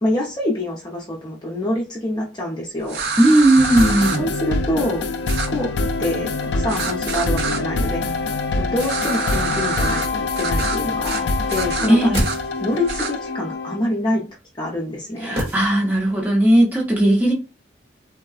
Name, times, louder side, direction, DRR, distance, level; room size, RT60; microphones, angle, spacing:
voice 1, 0.0-3.0 4.2-5.0 5.5-8.0 8.6-12.1 12.6-14.2 14.6-15.4, left 1 dB, 25° left, 0.7 m, -26 dB
sound 1, 2.9-4.2 5.3-5.5 6.7-7.6 8.8-10.1 10.4-10.8 11.0-11.2 11.5-12.4 12.9-13.1, right 4 dB, 60° right, 0.5 m, -26 dB
voice 2, 3.2-4.2 11.9-12.3 15.2-17.3, right 1 dB, 10° right, 0.8 m, -16 dB
sound 2, 3.6-14.0, left 3 dB, 70° left, 0.4 m, -25 dB
sound 3, 11.8-13.0 15.4-16.3 16.5-16.6, equal, 30° right, 1.1 m, -28 dB
3.6 x 2.1 x 2.4 m
head